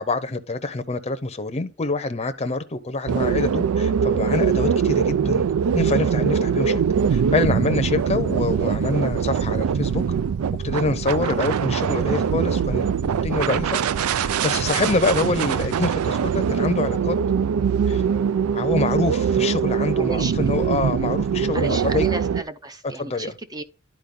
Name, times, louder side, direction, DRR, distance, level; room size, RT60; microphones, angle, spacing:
voice 1, 0.0-5.4 5.7-6.8 7.1-10.0 10.6-17.2 17.9-18.0 18.5-22.1 23.0-23.3, left 3 dB, 30° left, 0.7 m, -26 dB
sound 1, 3.1-22.4, right 7 dB, 90° right, 0.4 m, -22 dB
voice 2, 20.0-20.3 21.5-23.6, right 2 dB, 20° right, 0.5 m, -33 dB
11.0 x 4.6 x 3.7 m
head